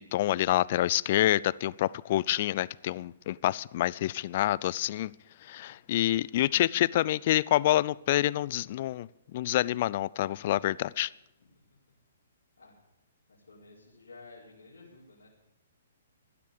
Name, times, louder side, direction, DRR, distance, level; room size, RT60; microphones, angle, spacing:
voice 1, 0.0-5.1 5.4-11.1, left 14 dB, 45° left, 23 dB, 0.5 m, -27 dB
voice 2, 5.6-6.0 11.5-11.8 12.6-12.8 13.3-15.3, left 3 dB, 80° left, -6 dB, 4.7 m, -53 dB
16.0 x 12.0 x 6.9 m, 0.85 s
figure-of-eight pair, 125°, 0 cm